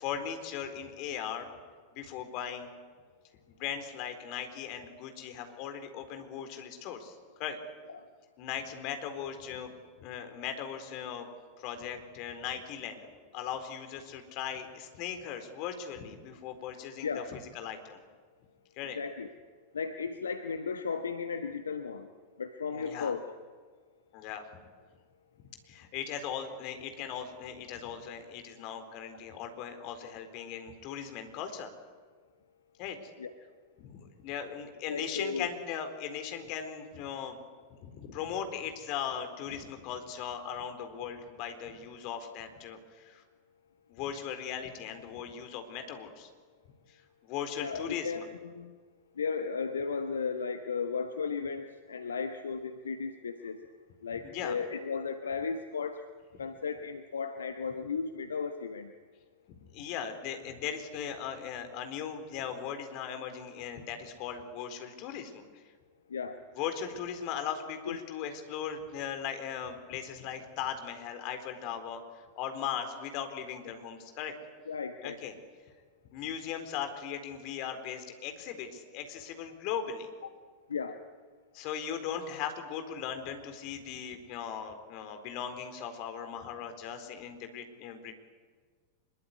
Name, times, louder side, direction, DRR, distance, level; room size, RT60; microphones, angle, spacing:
voice 1, 0.0-1.5 1.9-2.7 3.5-7.6 8.4-9.7 10.0-11.3 11.6-13.0 13.3-18.0 18.8-19.0 22.7-23.2 24.1-24.4 25.7-31.7 32.8-33.1 33.8-37.4 37.8-43.2 43.9-46.3 46.9-48.3 54.2-54.6 59.5-65.6 66.5-74.3 75.0-75.3 76.1-80.1 81.5-88.1, left 8 dB, 45° left, 7 dB, 4.1 m, -38 dB
voice 2, 18.9-19.3 19.7-22.1 22.4-23.2 33.2-33.3 34.9-35.5 47.6-48.7 49.2-53.6 54.0-56.0 56.4-58.9 66.1-66.4 67.9-68.0 74.7-75.2 80.7-81.0, left 5 dB, 70° left, 7 dB, 1.4 m, -35 dB
25.0 x 22.5 x 9.7 m, 1.5 s
figure-of-eight pair, 90°, 0 cm